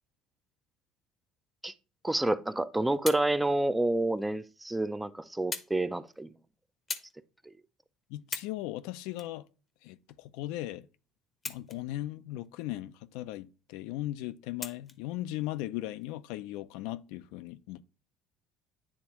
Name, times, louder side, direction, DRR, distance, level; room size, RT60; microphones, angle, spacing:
voice 1, 2.0-6.4 7.4-7.5, right 2 dB, 10° right, 0.4 m, -29 dB
sound 1, 2.5-3.3 4.2-4.3 5.5-5.8 6.1-6.3 6.9-7.2 7.7-7.8 8.2-8.6 9.1-10.1 11.3-12.0 12.4-12.5 14.6-15.0 15.9-16.0, left 4 dB, 30° left, 0.7 m, -39 dB
voice 2, 8.1-9.5 9.8-10.9 11.5-17.8, left 15 dB, 80° left, 0.4 m, -38 dB
9.5 x 3.5 x 2.9 m
supercardioid pair, 95°, 0 cm